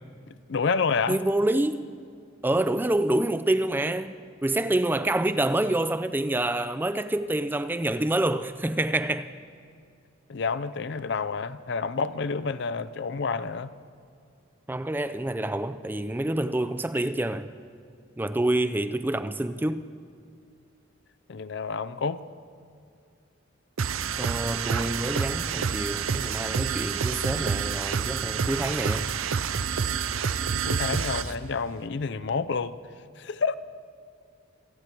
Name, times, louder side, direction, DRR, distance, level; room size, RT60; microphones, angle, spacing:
voice 1, 0.5-1.2 10.3-13.7 21.3-22.2 30.5-32.7 33.2-33.6, left 5 dB, 55° left, 0.5 m, -29 dB
voice 2, 1.1-1.8 2.4-4.1 4.4-9.3 14.7-17.5 18.2-19.9 24.2-29.1, right 1 dB, 10° right, 0.4 m, -27 dB
sound 1, 23.8-31.3, right 6 dB, 85° right, 0.6 m, -28 dB
28.0 x 9.7 x 4.5 m
head